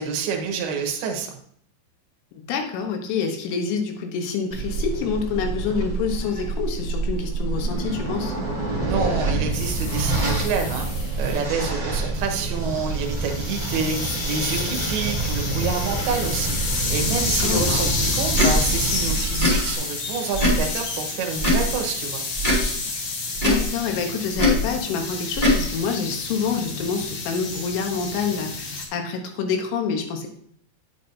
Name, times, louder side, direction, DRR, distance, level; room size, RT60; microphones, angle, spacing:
voice 1, 0.0-1.4 8.9-10.9 11.2-14.0 14.2-16.5 16.9-22.2, right 5 dB, 70° right, 2 dB, 2.8 m, -28 dB
voice 2, 2.4-8.3 17.4-18.2 23.4-30.3, left 5 dB, 80° left, 4 dB, 3.5 m, -27 dB
sound 1, 4.5-19.8, right 2 dB, 35° right, 0.7 m, -27 dB
sound 2, 9.5-11.4 12.2-28.9, left 3 dB, 60° left, 1.9 m, -30 dB
Tick / Tick-tock, 18.3-18.5 19.3-19.6 20.3-20.6 21.4-21.7 22.4-22.6 23.3-23.6 24.3-24.6 25.3-25.6, left 1 dB, 30° left, 0.8 m, -20 dB
8.9 x 8.5 x 2.7 m, 0.64 s
omnidirectional pair, 5.6 m